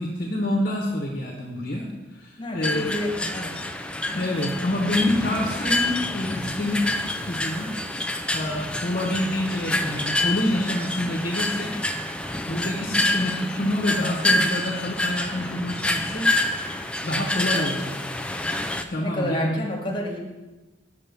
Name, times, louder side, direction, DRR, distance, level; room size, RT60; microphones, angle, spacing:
voice 1, 0.0-2.9 4.1-6.9 7.2-7.7 8.3-11.7 12.5-16.3 17.0-17.8 18.1-18.2 18.9-20.0, left 1 dB, 45° left, 0 dB, 1.0 m, -27 dB
voice 2, 2.4-3.7 4.1-4.2 17.4-17.9 19.0-20.2, left 1 dB, 25° left, -1 dB, 1.6 m, -31 dB
sound 1, 2.6-18.8, left 1 dB, 5° left, 0.3 m, -27 dB
6.7 x 5.4 x 6.8 m, 1.1 s
head